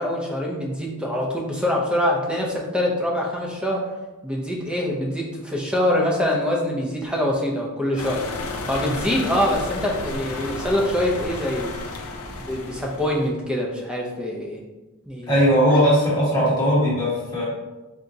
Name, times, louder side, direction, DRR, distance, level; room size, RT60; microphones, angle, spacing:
voice 1, 0.0-3.8 4.2-8.2 8.7-11.7 12.3-14.6 15.1-15.4, left 1 dB, 5° right, -2 dB, 0.5 m, -24 dB
sound 1, 8.0-13.3, left 2 dB, 70° left, 0.5 m, -32 dB
voice 2, 15.3-17.5, equal, 20° left, -6 dB, 1.1 m, -19 dB
3.9 x 3.5 x 2.6 m, 1.1 s
head